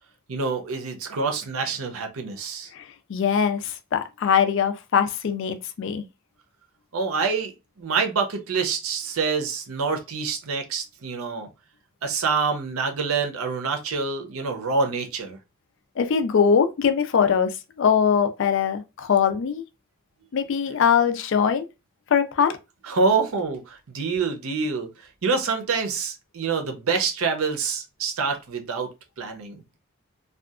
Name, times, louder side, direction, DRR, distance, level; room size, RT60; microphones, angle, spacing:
voice 1, 0.3-2.7 6.9-7.5 7.8-11.5 12.0-15.4 22.8-24.9 25.2-28.9 29.2-29.6, right 4 dB, 75° right, 0.6 m, -26 dB
voice 2, 2.7-6.0 16.0-19.6 20.3-21.7 22.1-22.6, left 7 dB, 60° left, 0.3 m, -22 dB
2.7 x 2.3 x 2.3 m
head